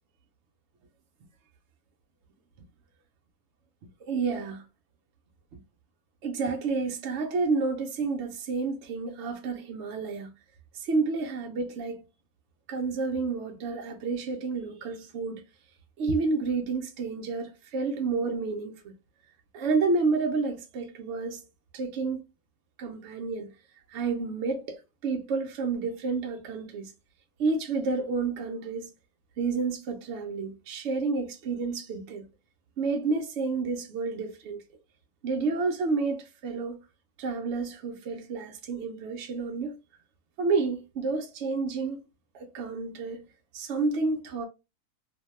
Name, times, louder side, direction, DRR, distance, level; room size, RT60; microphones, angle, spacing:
voice 1, 4.0-4.6 6.2-10.3 10.7-12.0 12.7-15.4 16.0-18.9 19.5-21.4 21.7-22.2 22.8-23.5 23.9-26.9 27.4-28.9 29.4-32.3 32.8-34.6 35.2-36.8 37.2-39.8 40.4-42.0 42.3-43.2 43.5-44.4, right 4 dB, 70° right, 0.6 m, -30 dB
2.7 x 2.2 x 3.0 m
omnidirectional pair, 1.7 m